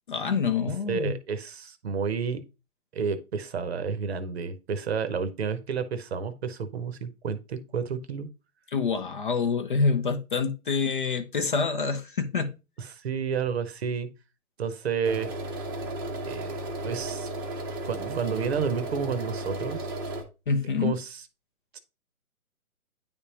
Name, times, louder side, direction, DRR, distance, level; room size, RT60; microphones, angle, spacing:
voice 1, 0.1-1.1 8.7-12.6 20.5-21.0, left 5 dB, 35° left, 0.6 m, -26 dB
voice 2, 0.9-2.4 2.9-8.3 12.8-14.1 14.6-15.3 16.3-17.3 17.9-19.9 20.8-21.2 21.7-21.8, right 6 dB, 45° right, 0.8 m, -30 dB
sound 1, 15.0-20.2, right 2 dB, 15° right, 0.7 m, -34 dB
9.6 x 3.5 x 2.8 m
hypercardioid pair, 150°, 45 cm